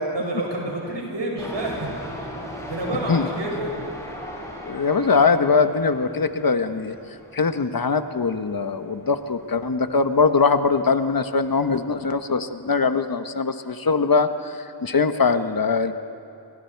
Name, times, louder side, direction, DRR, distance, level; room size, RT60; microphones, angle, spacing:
voice 1, 0.1-1.9 2.7-3.7, right 1 dB, 75° right, -2 dB, 6.7 m, -28 dB
sound 1, 1.4-12.5, equal, 5° left, 6.4 m, -39 dB
voice 2, 4.6-7.0 7.3-15.9, left 4 dB, 50° left, 9 dB, 1.2 m, -21 dB
28.0 x 24.0 x 4.7 m, 2.9 s
wide cardioid pair, 55°, 43 cm